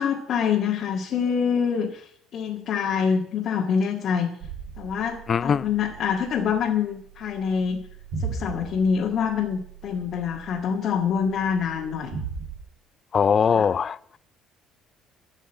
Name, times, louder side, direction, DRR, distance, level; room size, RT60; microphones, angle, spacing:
voice 1, 0.0-4.3 4.8-7.8 8.2-12.2 13.5-13.7, left 7 dB, 55° left, 1.8 m, -25 dB
sound 1, 4.4-12.6, right 5 dB, 70° right, 5.0 m, -38 dB
voice 2, 5.3-5.6 13.1-14.0, left 6 dB, 35° left, 0.4 m, -21 dB
13.5 x 6.4 x 8.0 m
cardioid pair, 125°, 0 cm